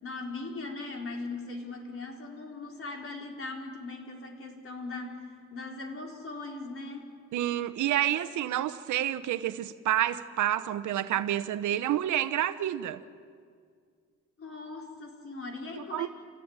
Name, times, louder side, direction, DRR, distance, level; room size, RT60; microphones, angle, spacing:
voice 1, 0.0-7.1 14.4-16.1, left 3 dB, 45° left, 4.3 m, -39 dB
voice 2, 7.3-13.0 15.9-16.1, right 12 dB, 75° right, 0.9 m, -29 dB
28.0 x 17.0 x 8.9 m
cardioid pair, 90°, 30 cm